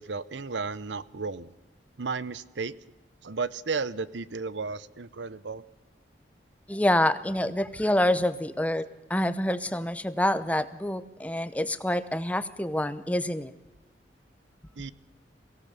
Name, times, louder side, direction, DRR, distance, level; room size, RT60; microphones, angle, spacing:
voice 1, 0.0-1.5 2.0-2.7 3.2-5.6 14.8-14.9, right 4 dB, 85° right, 18 dB, 0.8 m, -33 dB
voice 2, 6.7-13.5, left 1 dB, 10° left, 14 dB, 0.7 m, -27 dB
23.0 x 17.0 x 6.8 m, 0.99 s
head